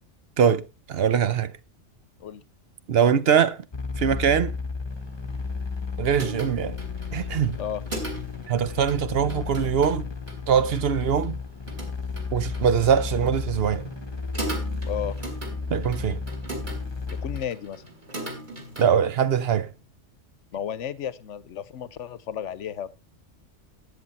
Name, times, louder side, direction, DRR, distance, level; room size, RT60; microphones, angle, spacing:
voice 1, 0.4-1.5 2.9-3.6 4.0-4.5 6.0-6.8 7.1-7.6 8.5-10.1 10.5-11.4 12.3-13.9 15.7-16.2 18.8-19.7, right 7 dB, 60° right, 0.9 m, -22 dB
sound 1, 3.7-17.4, left 4 dB, 25° left, 0.9 m, -33 dB
sound 2, 4.9-18.9, right 1 dB, 40° right, 3.2 m, -40 dB
voice 2, 17.1-17.8 20.5-22.9, left 9 dB, 70° left, 1.1 m, -33 dB
13.5 x 8.5 x 4.1 m
omnidirectional pair, 1.3 m